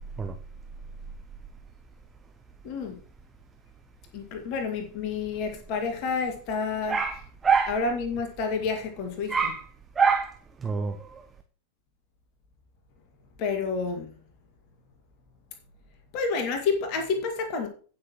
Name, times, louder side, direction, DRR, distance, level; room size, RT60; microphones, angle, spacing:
voice 1, 2.6-2.9 4.1-7.0 7.7-9.4 13.4-14.1 16.1-17.7, left 4 dB, 45° left, 2.0 m, -29 dB
voice 2, 6.9-7.8 9.3-9.7 10.0-11.2, right 6 dB, 15° right, 0.9 m, -26 dB
17.0 x 6.3 x 3.0 m
figure-of-eight pair, 90°, 0 cm